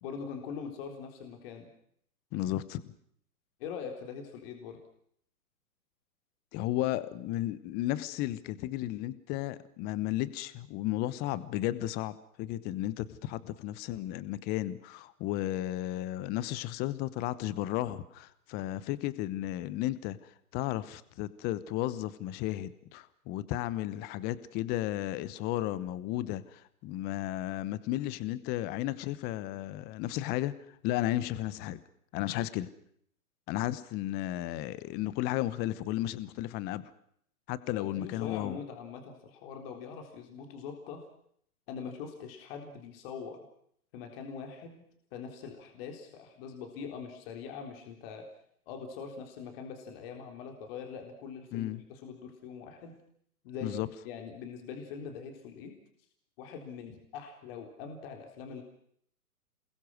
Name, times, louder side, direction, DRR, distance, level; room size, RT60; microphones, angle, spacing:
voice 1, 0.0-1.7 3.6-4.8 37.7-41.0 41.7-43.4 43.9-44.8 45.1-48.3 48.7-53.0 53.4-55.7 56.4-58.6, left 6 dB, 40° left, 4 dB, 3.9 m, -43 dB
voice 2, 2.3-2.8 6.5-31.8 32.1-32.7 33.5-36.9 37.5-38.6 51.5-51.8 53.6-53.9, left 14 dB, 20° left, 17 dB, 0.9 m, -34 dB
28.0 x 21.5 x 6.2 m, 0.66 s
hypercardioid pair, 135°, 45 cm